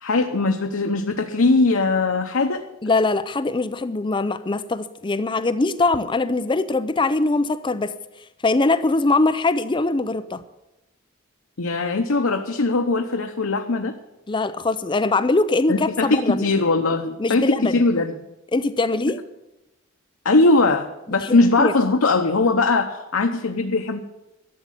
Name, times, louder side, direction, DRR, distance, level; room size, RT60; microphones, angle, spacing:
voice 1, 0.0-2.7 11.6-14.0 15.7-18.1 20.2-24.0, left 3 dB, 90° left, 4 dB, 0.9 m, -20 dB
voice 2, 2.8-7.9 8.4-10.4 14.3-16.4 17.2-17.8 18.5-19.2 21.2-21.7, left 3 dB, 25° left, 12 dB, 0.5 m, -22 dB
12.5 x 7.4 x 9.8 m, 0.97 s
head